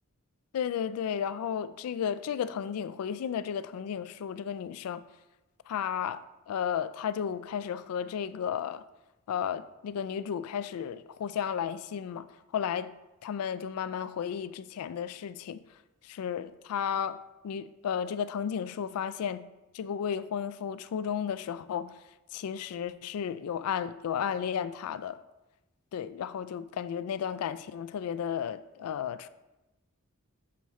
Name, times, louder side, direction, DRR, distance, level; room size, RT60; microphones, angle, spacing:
voice 1, 0.5-5.0 5.7-8.8 9.3-12.3 12.5-12.9 13.2-15.6 16.1-17.2 17.4-19.5 19.7-21.9 22.3-25.2 25.9-29.3, left 8 dB, 90° left, 0.3 m, -33 dB
6.9 x 4.7 x 3.1 m
head